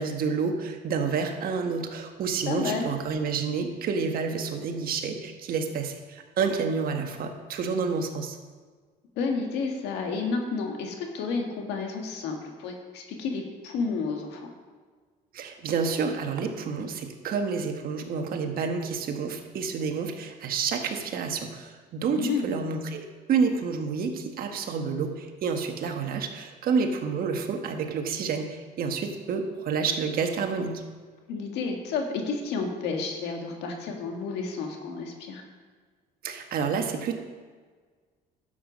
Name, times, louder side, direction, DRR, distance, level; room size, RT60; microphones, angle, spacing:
voice 1, 0.0-8.4 15.3-30.8 36.2-37.2, right 5 dB, 60° right, 5 dB, 1.4 m, -29 dB
voice 2, 2.5-2.9 9.2-14.5 22.1-22.7 31.3-35.4, left 4 dB, 85° left, 2 dB, 1.9 m, -31 dB
11.5 x 7.8 x 5.3 m, 1.5 s
cardioid pair, 110°, 17 cm